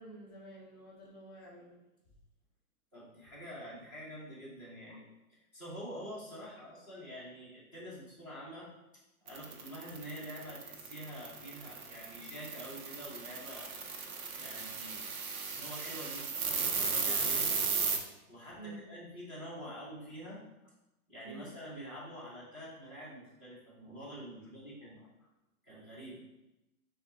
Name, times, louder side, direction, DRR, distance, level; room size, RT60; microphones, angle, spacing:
voice 1, 0.0-1.7 4.9-5.0 15.3-15.5 18.6-18.8 19.7-19.8 21.2-21.5 24.8-24.9, right 2 dB, 15° left, -7 dB, 0.6 m, -50 dB
voice 2, 2.9-8.7 9.2-13.7 14.3-15.1 15.5-17.6 18.3-20.4 21.1-25.0 25.6-26.2, equal, ahead, -14 dB, 1.0 m, -46 dB
sound 1, 9.3-18.0, right 5 dB, 70° right, 0.9 m, -35 dB
5.8 x 2.4 x 3.8 m, 0.95 s
hypercardioid pair, 175°, 44 cm